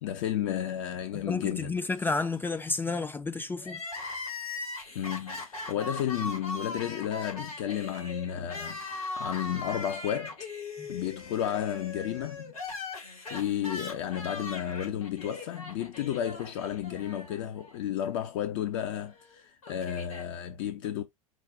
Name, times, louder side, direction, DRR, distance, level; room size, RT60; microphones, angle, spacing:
voice 1, 0.0-1.8 4.9-10.4 10.9-12.5 13.3-21.0, left 10 dB, 55° left, 0.6 m, -32 dB
voice 2, 1.1-3.8 10.8-10.9, left 3 dB, 10° left, 0.4 m, -31 dB
Crying sobbing, 3.6-17.8 18.0-18.1 19.1-20.3, left 3 dB, 75° left, 2.3 m, -40 dB
4.9 x 2.2 x 3.9 m
figure-of-eight pair, 80°, 18 cm